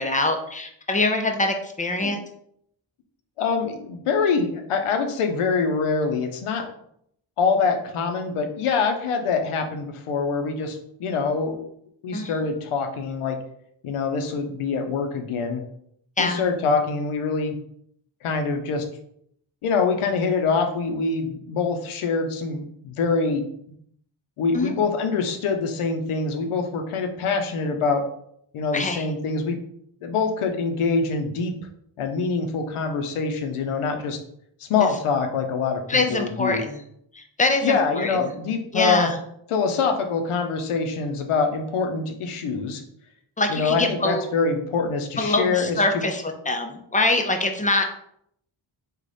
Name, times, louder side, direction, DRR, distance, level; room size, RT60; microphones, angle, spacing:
voice 1, 0.0-2.2 12.1-12.3 16.2-16.4 24.5-24.7 28.7-29.1 34.8-34.9 35.9-36.8 37.1-38.3 38.7-39.2 43.4-44.2 45.2-47.8, left 2 dB, 15° left, 4 dB, 0.6 m, -24 dB
voice 2, 3.4-6.7 7.4-11.6 12.0-13.4 13.8-15.6 16.2-17.6 18.2-18.9 19.6-23.4 24.4-28.0 28.5-29.6 30.0-31.6 32.0-34.2 34.6-36.6 37.6-39.1 39.5-42.8 43.5-46.0, left 4 dB, 85° left, 5 dB, 0.7 m, -24 dB
3.2 x 2.4 x 3.9 m, 0.71 s
cardioid pair, 45°, 49 cm